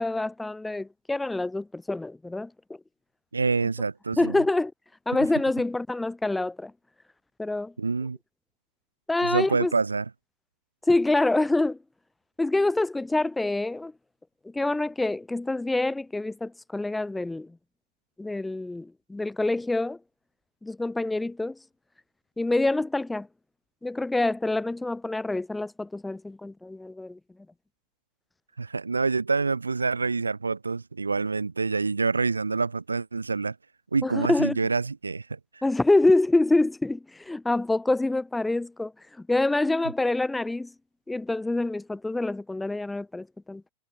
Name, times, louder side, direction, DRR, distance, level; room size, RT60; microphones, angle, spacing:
voice 1, 0.0-2.5 4.2-4.7 5.1-6.7 7.4-7.7 9.1-9.7 10.9-11.8 12.4-13.9 14.4-17.6 18.2-20.0 20.6-21.6 22.4-23.3 23.8-27.2 34.0-34.6 35.6-38.9 39.2-40.7 41.1-43.6, left 2 dB, 5° left, 4.5 m, -26 dB
voice 2, 3.3-4.4 7.8-8.2 9.2-10.1 28.6-33.6 33.9-35.4, right 4 dB, 80° right, 1.9 m, -27 dB
figure-of-eight pair, 90°, 0 cm